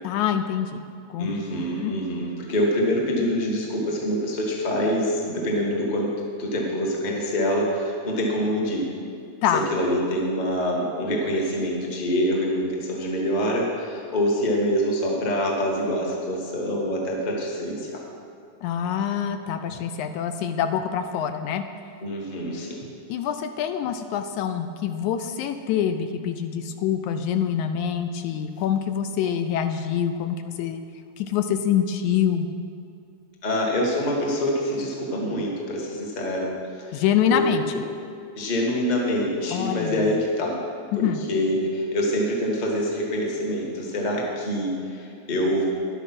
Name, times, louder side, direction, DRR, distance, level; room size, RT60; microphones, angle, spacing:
voice 1, 0.0-0.8 1.1-2.0 9.4-9.7 18.6-21.6 23.1-30.8 31.2-32.5 36.9-37.6 39.5-40.1 40.9-41.2, left 8 dB, 80° left, 8 dB, 1.9 m, -25 dB
voice 2, 1.2-6.1 6.4-8.9 9.5-18.0 22.0-22.8 33.4-37.0 37.3-37.4 38.3-40.6 41.0-45.6, equal, 30° left, -1 dB, 0.8 m, -25 dB
11.0 x 8.2 x 5.9 m, 2.5 s
omnidirectional pair, 3.5 m